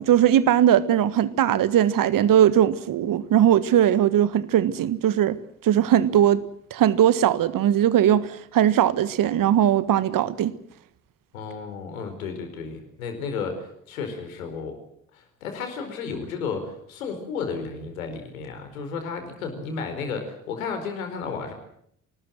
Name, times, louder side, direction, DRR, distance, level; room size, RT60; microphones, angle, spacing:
voice 1, 0.0-5.4 5.6-6.4 6.7-10.5, right 10 dB, 50° right, 1.6 m, -19 dB
voice 2, 11.3-14.8 15.1-21.5, left 5 dB, 80° left, 4.7 m, -33 dB
25.5 x 19.5 x 7.8 m
figure-of-eight pair, 50°, 41 cm